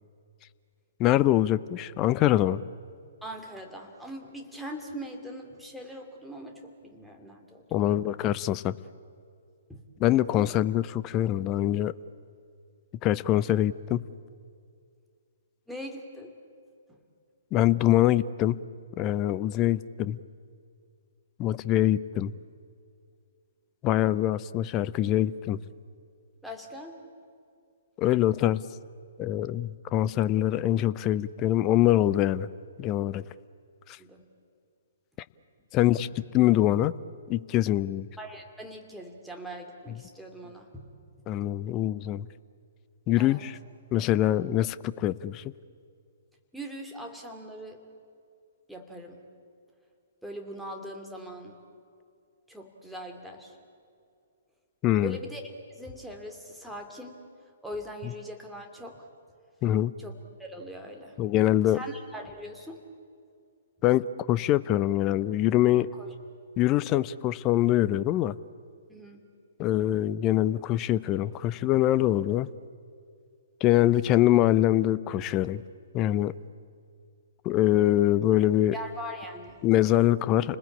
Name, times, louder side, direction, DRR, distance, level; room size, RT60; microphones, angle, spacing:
voice 1, 1.0-2.6 7.7-8.7 10.0-11.9 13.0-14.1 17.5-18.6 19.0-20.2 21.4-22.3 23.8-25.6 28.0-28.6 29.2-32.5 32.8-33.2 35.7-36.9 37.3-38.1 41.3-42.3 43.1-43.6 43.9-45.4 54.8-55.2 59.6-59.9 61.2-61.8 63.8-65.9 66.6-68.4 69.6-72.5 73.6-75.6 75.9-76.3 77.4-78.7 79.6-80.6, left 13 dB, 25° left, 17 dB, 0.6 m, -24 dB
voice 2, 3.2-8.0 9.7-9.8 15.7-16.3 26.4-27.0 34.0-34.2 38.2-40.9 43.2-43.4 46.5-47.8 48.7-49.2 50.2-51.6 52.5-53.6 55.0-55.4 55.7-57.2 57.6-59.1 60.0-61.2 61.7-62.8 65.9-66.1 68.9-69.2 78.7-79.6, equal, ahead, 1 dB, 2.7 m, -41 dB
29.5 x 20.5 x 8.6 m, 2.3 s
figure-of-eight pair, 120°, 0 cm